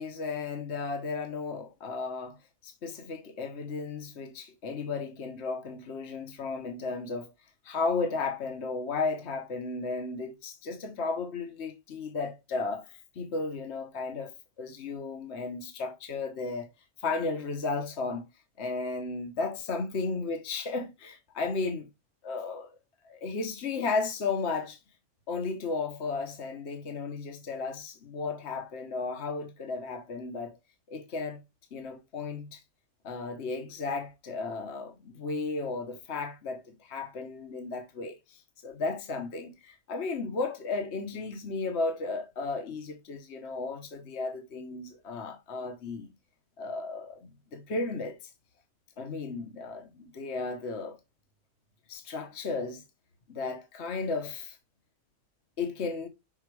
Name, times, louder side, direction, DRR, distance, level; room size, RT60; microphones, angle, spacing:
voice 1, 0.0-2.4 2.6-7.3 7.6-14.3 14.6-16.7 17.0-18.2 18.6-21.9 22.2-22.7 23.0-24.8 25.3-30.6 30.9-31.4 31.7-32.6 33.0-46.1 46.6-48.3 49.0-51.0 51.9-52.8 53.3-54.6 55.6-56.1, left 4 dB, 60° left, 1.3 m, -34 dB
6.0 x 3.9 x 4.7 m
omnidirectional pair, 1.3 m